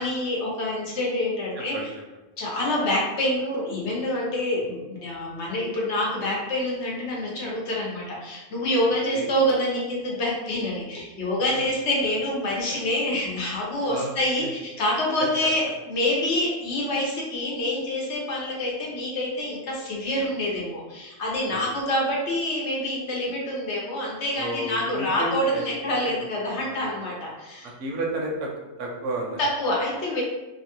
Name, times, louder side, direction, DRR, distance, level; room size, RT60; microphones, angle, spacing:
voice 1, 0.0-1.9 2.4-27.7 29.4-30.2, left 1 dB, 70° left, -3 dB, 1.1 m, -26 dB
voice 2, 24.3-26.3 26.5-27.0 27.8-28.5 28.8-29.4, right 1 dB, 80° right, -1 dB, 1.0 m, -32 dB
3.0 x 2.2 x 2.9 m, 1.1 s
omnidirectional pair, 1.2 m